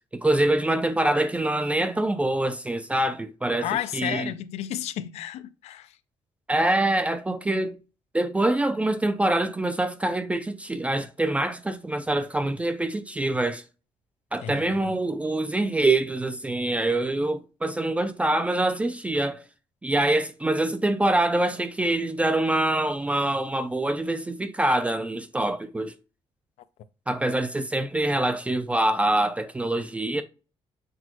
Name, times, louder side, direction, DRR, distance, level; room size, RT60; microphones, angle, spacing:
voice 1, 0.1-4.3 6.5-7.8 8.1-13.6 14.3-19.4 19.8-25.9 27.1-30.2, right 1 dB, 10° right, 0.3 m, -25 dB
voice 2, 3.6-6.0 14.4-14.8, left 12 dB, 90° left, 0.4 m, -32 dB
6.1 x 2.1 x 2.9 m
cardioid pair, 130°, 11 cm